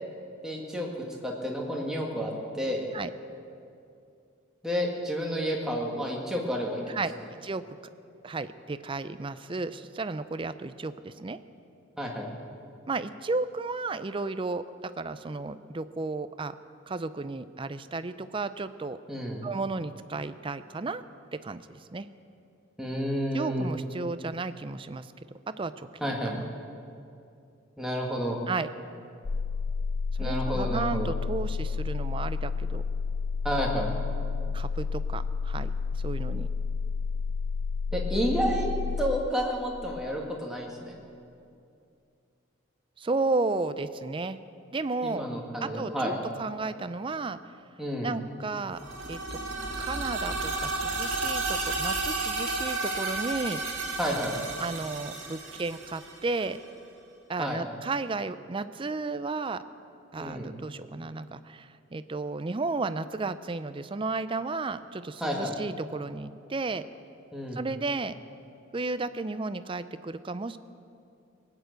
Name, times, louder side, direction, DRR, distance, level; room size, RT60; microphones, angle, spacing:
voice 1, 0.4-0.9 1.2-2.9 4.6-7.0 12.0-12.3 19.1-19.4 22.8-23.7 26.0-26.5 27.8-28.4 30.2-31.1 33.4-33.9 37.9-38.7 39.0-41.0 45.0-46.1 47.8-48.1 54.0-54.4 57.4-57.6 60.2-60.5 65.2-65.6 67.3-67.6, equal, 5° right, -2 dB, 1.9 m, -30 dB
voice 2, 8.2-11.4 12.9-16.6 16.9-19.0 19.4-21.0 21.3-22.1 23.3-25.1 25.5-26.4 28.5-28.7 30.2-32.8 34.5-35.7 36.0-36.5 43.0-44.4 44.7-45.3 45.8-46.1 46.4-47.4 48.0-48.8 49.1-49.4 49.8-53.6 54.6-56.6 57.3-59.6 60.1-66.8 67.5-68.1 68.7-70.6, right 3 dB, 25° right, 13 dB, 0.4 m, -33 dB
sound 1, 29.2-39.3, left 5 dB, 70° left, 0.6 m, -30 dB
sound 2, 48.7-56.6, right 3 dB, 80° right, 2.0 m, -32 dB
19.0 x 9.0 x 8.1 m, 2.5 s
head